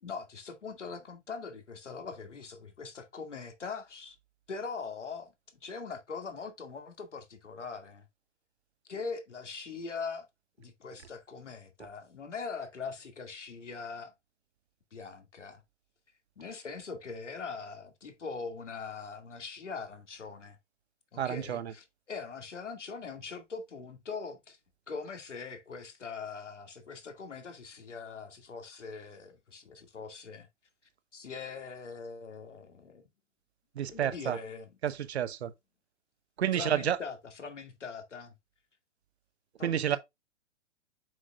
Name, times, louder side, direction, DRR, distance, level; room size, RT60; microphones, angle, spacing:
voice 1, 0.0-4.2 4.5-5.3 5.6-8.0 8.9-10.3 10.6-14.1 14.9-15.6 16.4-20.6 21.1-24.6 24.9-30.5 31.1-33.1 33.9-34.7 36.5-38.3 39.6-40.0, left 5 dB, 75° left, 2.3 m, -42 dB
voice 2, 21.2-21.7 33.8-34.4 34.8-35.5 36.4-37.0 39.6-40.0, right 10 dB, 60° right, 1.0 m, -30 dB
7.7 x 6.2 x 2.4 m
figure-of-eight pair, 120°, 36 cm